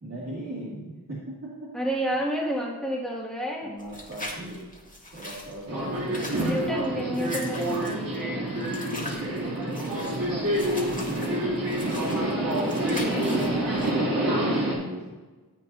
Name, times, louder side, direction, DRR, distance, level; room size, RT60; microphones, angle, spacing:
voice 1, 0.0-1.7 3.6-4.7 5.1-6.8 8.0-11.2 14.3-15.2, right 1 dB, 40° right, -8 dB, 2.6 m, -39 dB
voice 2, 1.7-3.7 6.4-8.6 12.1-14.0, equal, ahead, -4 dB, 2.4 m, -31 dB
sound 1, 3.8-13.9, left 1 dB, 20° left, 2.1 m, -42 dB
Subway metro underground, 5.7-14.7, right 1 dB, 60° right, 3.1 m, -27 dB
14.5 x 8.1 x 2.8 m, 1.3 s
wide cardioid pair, 70°, 38 cm